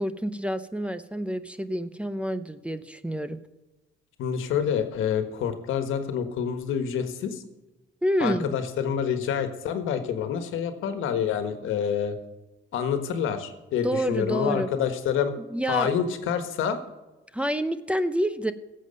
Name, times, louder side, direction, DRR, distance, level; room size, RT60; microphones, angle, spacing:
voice 1, 0.0-3.4 8.0-8.6 13.8-14.7 15.5-15.9 17.3-18.5, equal, 5° right, 12 dB, 0.7 m, -28 dB
voice 2, 4.2-7.4 8.2-12.1 12.7-15.3 15.7-16.8, left 7 dB, 85° left, 8 dB, 1.4 m, -27 dB
16.5 x 7.6 x 5.3 m, 1.1 s
cardioid pair, 90°, 20 cm